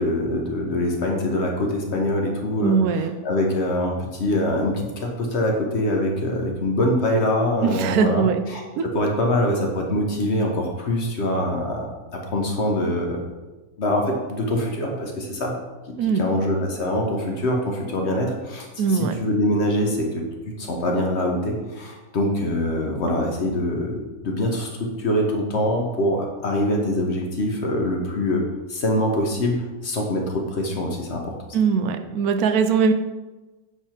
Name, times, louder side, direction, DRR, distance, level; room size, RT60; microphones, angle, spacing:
voice 1, 0.0-11.9 12.3-13.2 13.8-15.6 16.2-18.7 18.9-31.3, left 1 dB, 50° left, 1 dB, 1.1 m, -24 dB
voice 2, 2.6-3.2 7.6-8.4 8.8-8.9 16.0-16.2 18.8-19.1 31.5-32.9, right 6 dB, 80° right, 8 dB, 1.1 m, -21 dB
8.1 x 3.5 x 4.3 m, 1.2 s
omnidirectional pair, 1.6 m